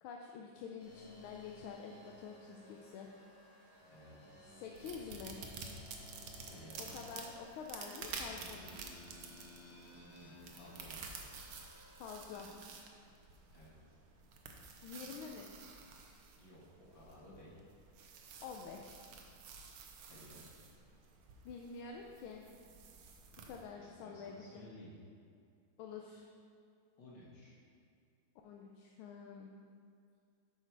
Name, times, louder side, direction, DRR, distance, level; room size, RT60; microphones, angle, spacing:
voice 1, 0.0-3.1 4.6-5.4 6.8-8.8 12.0-12.5 14.8-15.5 18.4-19.0 21.4-22.5 23.4-24.7 25.8-26.3 28.4-29.5, left 6 dB, 85° left, 1 dB, 1.5 m, -48 dB
sound 1, 0.8-12.4, left 1 dB, 30° left, 1.9 m, -58 dB
voice 2, 3.8-4.5 6.5-7.0 10.2-11.1 13.5-14.0 16.4-17.5 20.1-20.6 23.7-24.9 27.0-27.6, left 1 dB, 65° left, -6 dB, 2.5 m, -56 dB
sound 2, 4.7-23.6, right 5 dB, 90° right, 1.6 m, -51 dB
8.2 x 5.6 x 4.5 m, 2.4 s
omnidirectional pair, 2.2 m